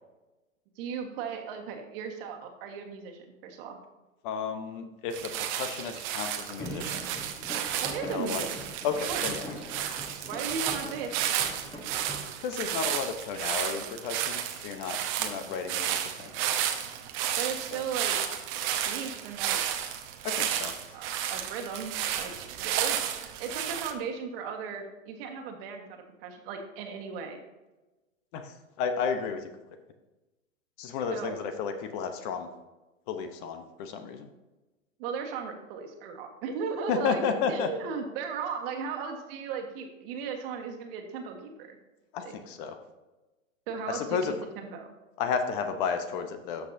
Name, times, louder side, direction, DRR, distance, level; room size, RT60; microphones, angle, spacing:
voice 1, 0.8-3.8 7.8-8.6 9.1-9.2 10.3-11.7 17.4-18.2 18.9-19.6 20.9-22.3 22.6-27.4 31.1-31.4 35.0-37.2 37.5-41.8 42.2-42.3 43.7-44.2 44.6-44.9, right 6 dB, 45° right, 3 dB, 1.5 m, -36 dB
voice 2, 4.2-7.1 8.0-8.5 8.8-9.4 12.4-16.5 17.7-17.8 20.2-20.7 28.3-29.5 30.8-32.5 33.1-34.3 36.9-37.7 42.1-42.8 43.9-44.3 45.2-46.7, left 6 dB, 40° left, 7 dB, 0.9 m, -32 dB
sound 1, 5.1-23.9, right 10 dB, 30° right, 0.8 m, -32 dB
sound 2, 6.6-12.3, equal, 10° left, 1.2 m, -42 dB
13.0 x 5.7 x 2.7 m, 1.1 s
hypercardioid pair, 130°, 40 cm